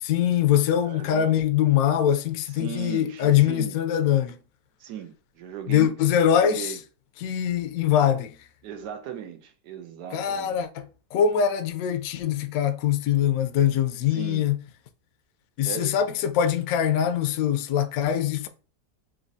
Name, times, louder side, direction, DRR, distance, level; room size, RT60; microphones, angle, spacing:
voice 1, 0.0-4.4 5.7-6.7 7.2-8.4 10.1-14.6 15.6-18.5, left 9 dB, 70° left, 0.9 m, -23 dB
voice 2, 0.8-1.3 2.5-3.8 4.8-6.0 6.4-6.8 8.6-10.6 14.1-14.5 15.6-15.9, right 9 dB, 85° right, 1.3 m, -37 dB
6.1 x 2.6 x 2.6 m
omnidirectional pair, 1.8 m